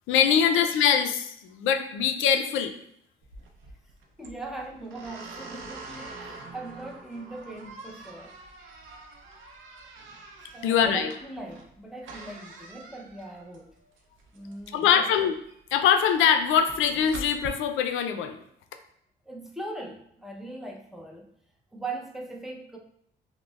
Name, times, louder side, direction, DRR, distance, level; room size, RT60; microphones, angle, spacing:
voice 1, 0.1-2.7 10.6-11.1 14.7-15.3 15.7-18.4, left 8 dB, 85° left, 8 dB, 0.4 m, -23 dB
sound 1, 3.2-17.5, right 2 dB, 80° right, 0.5 m, -46 dB
voice 2, 4.2-8.3 10.5-13.8 14.3-15.1 19.3-21.3 21.7-22.8, right 2 dB, ahead, 0 dB, 0.5 m, -40 dB
5.0 x 2.1 x 2.3 m, 0.72 s
cardioid pair, 90°, 20 cm